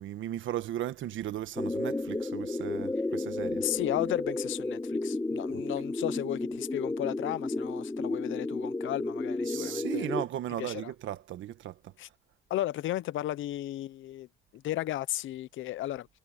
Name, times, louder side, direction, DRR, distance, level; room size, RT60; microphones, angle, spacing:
voice 1, 0.0-3.7 5.5-5.6 9.5-11.9, right 12 dB, 75° right, 1.4 m, -36 dB
sound 1, 1.6-10.2, left 2 dB, 15° left, 1.2 m, -33 dB
voice 2, 3.6-10.1 10.6-10.9 12.0-12.1 12.5-14.3 14.5-16.1, left 14 dB, 80° left, 0.8 m, -34 dB
cardioid pair, 90°, 20 cm